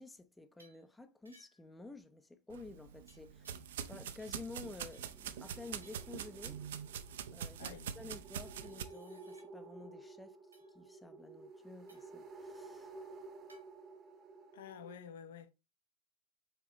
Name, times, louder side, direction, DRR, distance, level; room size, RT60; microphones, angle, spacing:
voice 1, 0.0-3.6 3.9-6.6 7.3-10.4 10.7-12.9, left 3 dB, 10° left, 0.5 m, -51 dB
sound 1, 0.6-0.9 1.3-1.7 3.1-3.9 4.2-5.2 5.8-6.2 7.9-9.5 10.5-10.7 11.9-12.2 13.5-13.7, right 1 dB, 80° right, 1.7 m, -66 dB
sound 2, 2.5-8.8, right 8 dB, 60° right, 0.4 m, -44 dB
sound 3, 5.0-14.9, right 3 dB, 20° right, 0.8 m, -53 dB
voice 2, 7.6-7.9 14.5-15.5, left 8 dB, 55° left, 0.7 m, -50 dB
4.4 x 3.9 x 2.9 m
figure-of-eight pair, 90°, 0 cm